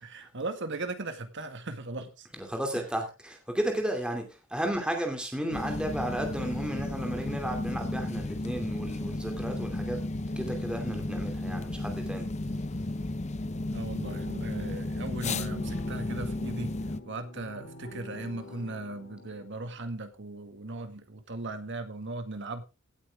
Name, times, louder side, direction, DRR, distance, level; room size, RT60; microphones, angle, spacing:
voice 1, 0.0-2.3 2.7-2.8 13.7-16.7 17.1-22.6, right 2 dB, 60° right, 1.9 m, -38 dB
voice 2, 2.4-4.2 4.5-10.0 10.4-12.2, right 1 dB, 5° right, 2.5 m, -33 dB
sound 1, 5.5-17.0, left 2 dB, 35° left, 0.7 m, -33 dB
sound 2, 14.0-19.7, left 2 dB, 50° left, 2.7 m, -46 dB
17.0 x 8.7 x 3.5 m
head